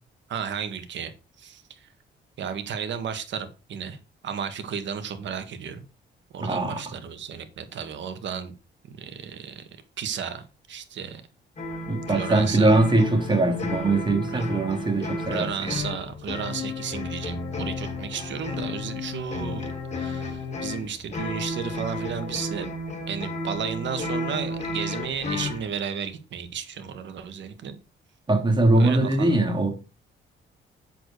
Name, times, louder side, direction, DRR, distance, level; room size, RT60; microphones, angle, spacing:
voice 1, 0.3-1.1 1.4-1.8 2.4-4.0 4.2-5.8 6.3-8.5 8.8-9.7 10.0-11.2 12.1-12.8 14.3-14.4 15.3-22.7 23.1-27.7 28.8-29.3, right 7 dB, 65° right, 1.7 m, -33 dB
voice 2, 6.4-6.9 11.8-15.8 28.3-29.7, right 2 dB, 25° right, 2.8 m, -22 dB
sound 1, 11.6-25.7, left 2 dB, 35° left, 4.2 m, -33 dB
7.7 x 6.8 x 4.7 m
cardioid pair, 90°, 20 cm